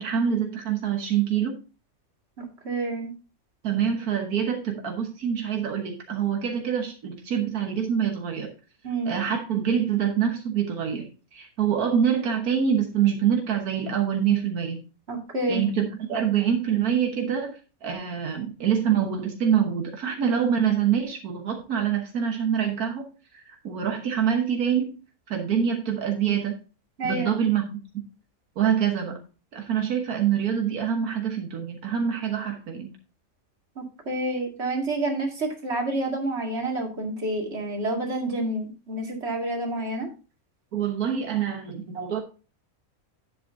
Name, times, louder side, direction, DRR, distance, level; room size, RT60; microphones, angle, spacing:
voice 1, 0.0-1.6 3.6-8.5 9.1-14.8 15.5-23.1 23.3-25.0 25.3-26.6 27.0-28.0 28.6-29.2 29.5-32.9 40.7-42.2, right 8 dB, 85° right, 2 dB, 1.7 m, -25 dB
voice 2, 2.6-3.1 8.8-9.1 15.1-15.7 27.0-27.3 33.8-40.1, right 2 dB, 45° right, 1 dB, 2.5 m, -28 dB
10.5 x 7.9 x 2.7 m, 0.33 s
omnidirectional pair, 1.5 m